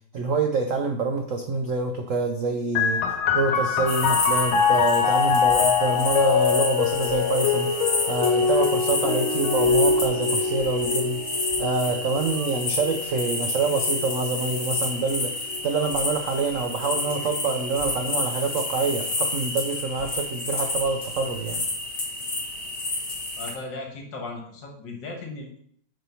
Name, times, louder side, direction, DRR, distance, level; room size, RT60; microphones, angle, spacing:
voice 1, 0.1-3.0 3.3-7.7 8.1-11.2 11.6-21.6, right 3 dB, 70° right, 3 dB, 0.7 m, -26 dB
sound 1, 2.8-16.0 16.9-17.6, left 6 dB, 85° left, 1.7 m, -24 dB
sound 2, 3.9-23.5, left 2 dB, 40° left, 2.1 m, -30 dB
voice 2, 23.4-25.6, left 3 dB, 65° left, 1 dB, 2.0 m, -37 dB
5.9 x 4.4 x 5.5 m, 0.64 s
omnidirectional pair, 2.2 m